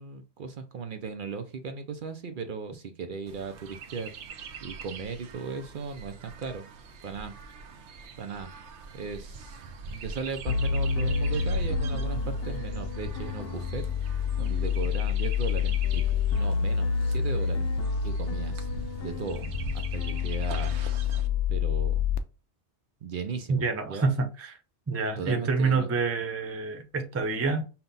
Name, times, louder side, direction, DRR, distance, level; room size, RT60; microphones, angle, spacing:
voice 1, 0.0-4.1 4.6-6.7 7.0-7.3 8.2-8.5 8.9-13.8 14.4-18.7 19.0-21.1 21.5-22.0 23.0-24.1 25.2-25.9, right 5 dB, 55° right, 0.7 m, -37 dB
Chirp tweet, 3.3-21.3, right 4 dB, 90° right, 0.9 m, -42 dB
sound 1, 10.5-22.2, left 6 dB, 70° left, 0.8 m, -28 dB
voice 2, 23.5-24.6 24.9-27.6, right 4 dB, 20° right, 0.4 m, -27 dB
5.6 x 2.2 x 3.9 m
omnidirectional pair, 1.1 m